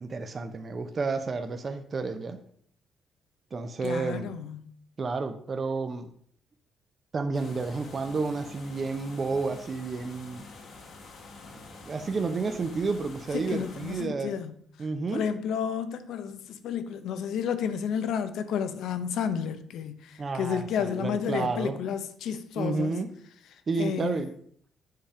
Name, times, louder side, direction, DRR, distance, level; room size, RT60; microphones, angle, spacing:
voice 1, 0.0-2.4 3.5-4.3 5.0-6.1 7.1-10.4 11.8-14.3 14.8-15.2 20.2-21.8 22.6-23.1 23.7-24.3, right 4 dB, 40° right, 0.7 m, -31 dB
voice 2, 3.8-4.6 13.3-14.5 15.1-23.0 23.8-24.2, left 7 dB, 80° left, 0.7 m, -31 dB
sound 1, 7.3-14.0, left 3 dB, 65° left, 1.5 m, -47 dB
7.6 x 3.5 x 5.6 m
cardioid pair, 90°, 0 cm